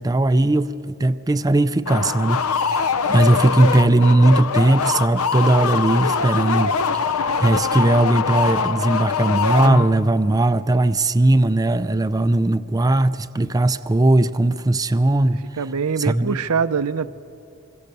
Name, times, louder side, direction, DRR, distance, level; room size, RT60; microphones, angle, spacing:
voice 1, 0.0-15.4 16.0-16.4, right 2 dB, 15° right, 0.5 m, -18 dB
sound 1, 1.9-10.2, left 5 dB, 70° left, 0.8 m, -23 dB
voice 2, 15.6-17.1, right 6 dB, 85° right, 0.7 m, -23 dB
25.5 x 24.0 x 6.8 m
head